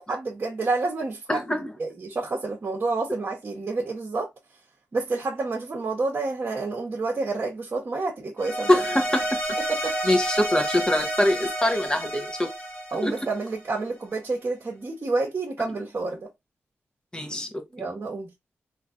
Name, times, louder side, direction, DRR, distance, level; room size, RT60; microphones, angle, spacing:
voice 1, 0.1-1.4 1.8-4.3 4.9-8.8 9.7-9.9 12.9-16.3 17.7-18.3, right 3 dB, 45° right, 0.9 m, -29 dB
voice 2, 1.3-1.7 8.7-9.2 10.0-12.5 13.0-13.1 17.1-17.6, left 1 dB, 15° left, 0.9 m, -23 dB
sound 1, 8.4-13.7, right 1 dB, 40° left, 1.4 m, -30 dB
3.1 x 2.6 x 2.5 m
cardioid pair, 60°, 5 cm